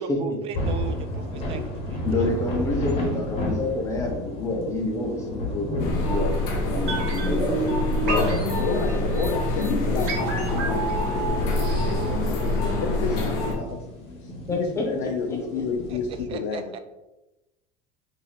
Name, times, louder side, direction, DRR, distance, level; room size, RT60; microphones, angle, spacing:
voice 1, 0.2-2.3 15.9-16.0 16.3-16.8, right 6 dB, 35° right, 9 dB, 0.4 m, -37 dB
sound 1, 0.5-16.3, left 1 dB, 40° left, 1.2 m, -33 dB
voice 2, 2.0-6.3 6.7-8.1 14.5-15.6, left 2 dB, 15° left, -1 dB, 0.9 m, -28 dB
sound 2, 5.8-13.5, left 2 dB, 65° left, 1.0 m, -25 dB
sound 3, 6.9-12.9 13.2-13.3, right 4 dB, 75° right, 1.3 m, -31 dB
voice 3, 8.4-10.3 10.6-13.9 14.2-16.8, left 5 dB, 85° left, 2 dB, 0.5 m, -32 dB
3.0 x 2.8 x 4.1 m, 1.0 s
cardioid pair, 150°, 17 cm